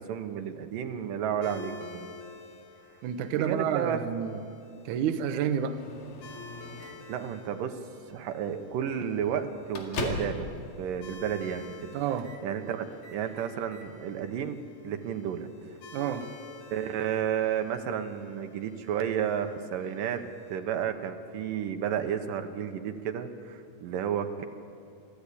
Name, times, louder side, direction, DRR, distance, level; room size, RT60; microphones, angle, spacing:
voice 1, 0.0-2.1 3.4-4.0 7.1-7.8 8.1-10.5 10.8-11.9 12.4-15.5 16.7-20.2 20.5-24.5, right 8 dB, 85° right, 6 dB, 2.8 m, -32 dB
sound 1, 1.4-20.6, left 3 dB, 70° left, 3.8 m, -51 dB
voice 2, 3.0-4.4 4.9-5.8 11.9-12.3 15.9-16.3, right 8 dB, 70° right, 7 dB, 2.3 m, -29 dB
Microwave oven, 5.8-7.2 8.1-8.3 8.7-8.8 9.2-10.5 10.8-10.9 11.6-11.9 12.2-12.5 12.8-13.9, left 4 dB, 90° left, 3.8 m, -39 dB
25.5 x 15.0 x 8.5 m, 2.6 s
omnidirectional pair, 3.8 m